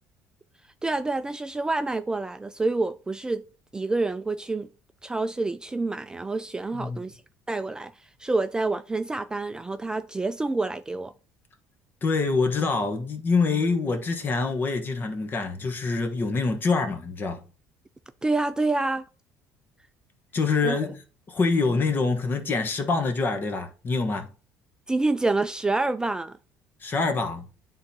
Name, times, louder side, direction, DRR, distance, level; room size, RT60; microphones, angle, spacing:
voice 1, 0.8-3.4 3.7-4.7 5.0-7.2 7.5-11.1 18.2-19.1 20.6-20.8 24.9-26.4, right 3 dB, 10° right, 0.3 m, -27 dB
voice 2, 12.0-17.4 20.3-21.0 21.3-24.3 26.8-27.5, left 4 dB, 35° left, 1.2 m, -25 dB
9.9 x 3.9 x 2.8 m
cardioid pair, 105°, 6 cm